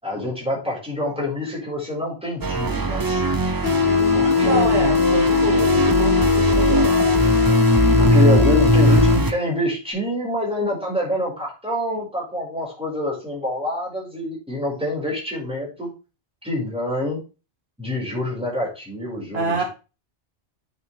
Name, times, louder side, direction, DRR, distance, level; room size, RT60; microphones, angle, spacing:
voice 1, 0.0-3.2 4.1-4.8 8.0-15.9 16.4-17.2 17.8-19.7, left 1 dB, 5° right, -4 dB, 5.2 m, -26 dB
sound 1, 2.4-9.3, right 2 dB, 25° right, 0.5 m, -20 dB
sound 2, 3.6-9.6, left 7 dB, 45° left, 2.3 m, -20 dB
voice 2, 4.4-7.0 19.3-19.6, right 3 dB, 65° right, 3 dB, 1.4 m, -26 dB
9.2 x 6.7 x 3.4 m, 0.32 s
omnidirectional pair, 1.1 m